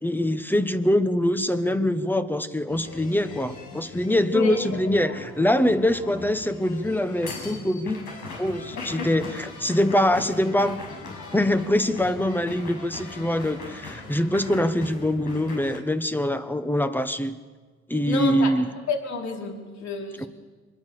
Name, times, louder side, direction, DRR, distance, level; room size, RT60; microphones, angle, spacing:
voice 1, 0.0-8.0 8.4-10.8 11.3-17.4 17.9-18.7 20.2-20.3, left 1 dB, 5° left, 10 dB, 1.3 m, -24 dB
sound 1, 2.7-15.8, left 3 dB, 85° left, 6.2 m, -40 dB
voice 2, 8.8-9.1 18.0-18.5 18.9-20.3, left 4 dB, 65° left, 1 dB, 3.9 m, -29 dB
25.0 x 21.5 x 6.9 m, 1.4 s
cardioid pair, 90°, 30 cm